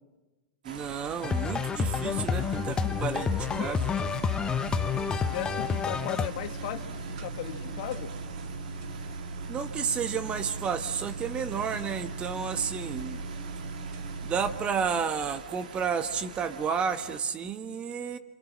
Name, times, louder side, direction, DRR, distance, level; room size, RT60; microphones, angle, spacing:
voice 1, 0.6-3.9 9.5-13.2 14.2-18.2, right 6 dB, 25° right, 9 dB, 1.5 m, -31 dB
sound 1, 0.6-17.2, right 6 dB, 70° right, 3.0 m, -46 dB
sound 2, 1.2-6.3, left 6 dB, 20° left, 1.0 m, -29 dB
sound 3, 1.8-14.6, right 4 dB, 55° right, 5.4 m, -39 dB
voice 2, 5.3-8.1, left 12 dB, 55° left, 6 dB, 2.1 m, -36 dB
28.5 x 27.0 x 7.5 m, 1.2 s
hypercardioid pair, 110°, 5 cm